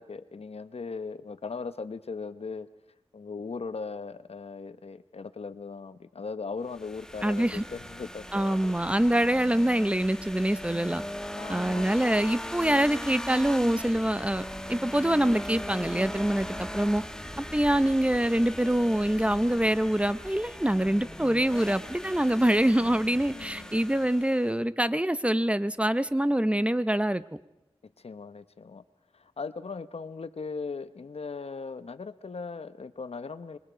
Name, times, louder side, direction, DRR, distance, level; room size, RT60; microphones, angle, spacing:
voice 1, 0.0-2.7 3.1-8.7 11.3-11.9 23.3-23.8 28.0-28.8 29.1-33.6, left 4 dB, 80° left, 13 dB, 0.9 m, -38 dB
sound 1, 6.7-24.5, equal, 5° left, 1.2 m, -39 dB
voice 2, 7.2-7.6 8.3-11.0 11.5-17.0 17.4-27.2, right 1 dB, 10° right, 14 dB, 0.8 m, -25 dB
26.5 x 23.0 x 5.0 m, 0.96 s
wide cardioid pair, 75°, 10 cm